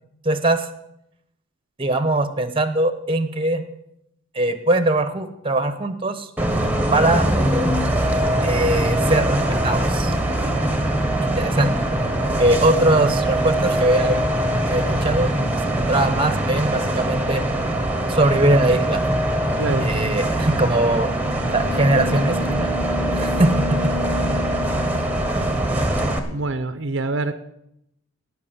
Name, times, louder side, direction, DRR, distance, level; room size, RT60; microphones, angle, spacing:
voice 1, 0.2-0.6 1.8-3.6 4.3-6.3 6.9-7.3 8.4-10.1 11.2-11.7 12.4-14.2 14.7-15.3 15.6-17.4 18.1-19.0 19.8-21.1 21.5-22.7 23.1-23.9, right 1 dB, 25° right, 11 dB, 0.9 m, -21 dB
Bus, 6.4-26.2, right 1 dB, 5° right, 1.2 m, -22 dB
voice 2, 19.6-19.9 26.3-27.3, right 2 dB, 55° right, 10 dB, 0.7 m, -25 dB
18.0 x 6.0 x 7.3 m, 0.78 s
head